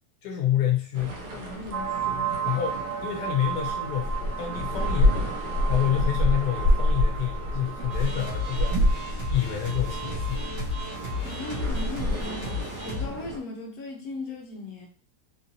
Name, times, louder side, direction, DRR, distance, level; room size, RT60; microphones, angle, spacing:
voice 1, 0.2-1.2 2.5-5.3 5.7-8.9 9.3-10.8, left 11 dB, 85° left, 1.2 m, -28 dB
sound 1, 0.9-13.4, left 1 dB, 85° right, 1.3 m, -28 dB
voice 2, 1.3-2.3 11.2-14.9, left 3 dB, 65° left, 1.1 m, -38 dB
sound 2, 1.7-11.2, right 8 dB, 65° right, 1.9 m, -35 dB
sound 3, 7.9-13.1, left 3 dB, 50° right, 1.2 m, -33 dB
3.7 x 2.5 x 2.8 m
omnidirectional pair, 1.7 m